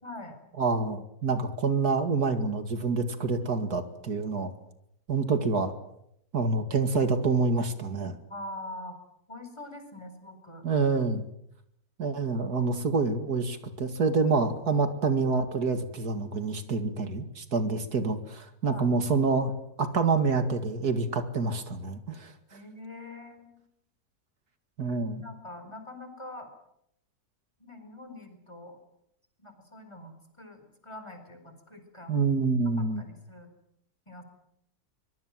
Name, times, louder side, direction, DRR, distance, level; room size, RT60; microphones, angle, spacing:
voice 1, 0.0-0.4 8.3-9.0 9.3-10.6 18.6-18.9 22.5-23.6 25.1-26.5 27.6-28.8 29.4-32.3 32.8-33.5 34.1-34.2, left 1 dB, 15° left, 7 dB, 4.6 m, -44 dB
voice 2, 0.6-4.5 5.1-5.7 6.3-8.2 10.6-11.3 12.0-19.5 19.8-22.3 24.8-25.2 32.1-33.0, right 4 dB, 75° right, 8 dB, 2.6 m, -27 dB
24.5 x 22.5 x 7.6 m, 0.77 s
omnidirectional pair, 1.7 m